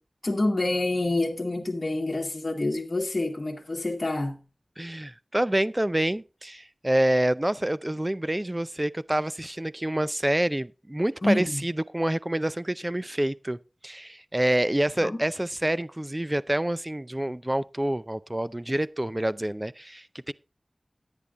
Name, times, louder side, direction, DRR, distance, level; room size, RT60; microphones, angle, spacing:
voice 1, 0.2-4.4 11.2-11.6 15.0-15.2, left 2 dB, 45° left, 1.4 m, -27 dB
voice 2, 4.8-13.6 13.8-20.3, right 1 dB, 20° right, 0.5 m, -27 dB
10.5 x 9.9 x 3.6 m
wide cardioid pair, 60°, 0 cm